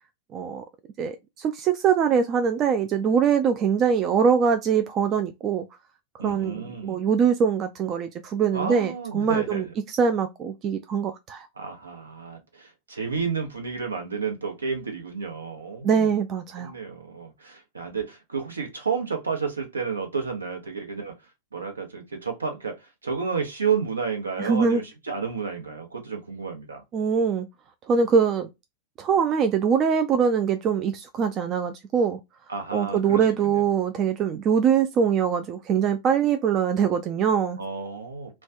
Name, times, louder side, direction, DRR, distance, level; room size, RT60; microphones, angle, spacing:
voice 1, 0.3-0.6 1.0-5.7 6.2-11.5 15.8-16.7 24.4-24.8 26.9-27.5 27.9-28.5 29.0-32.2 32.7-37.6, right 6 dB, 30° right, 0.4 m, -23 dB
voice 2, 6.2-7.0 8.5-9.6 11.6-16.1 16.6-21.1 21.5-26.8 32.5-33.6 37.6-38.4, right 5 dB, 75° right, 0.9 m, -31 dB
3.2 x 2.2 x 2.4 m
figure-of-eight pair, 90°, 0 cm